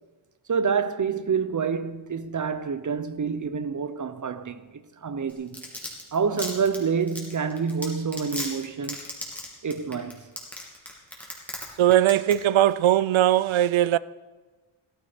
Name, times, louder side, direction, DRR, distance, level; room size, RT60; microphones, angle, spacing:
voice 1, 0.5-4.7 5.0-5.6 6.1-9.0 9.6-10.2, right 6 dB, 40° right, 0.7 m, -27 dB
Domestic sounds home sounds, 5.3-11.6 11.9-12.3 12.6-12.7, left 1 dB, 5° left, 2.8 m, -34 dB
voice 2, 11.8-14.0, right 12 dB, 75° right, 0.5 m, -20 dB
15.5 x 14.0 x 5.1 m
wide cardioid pair, 160°, 48 cm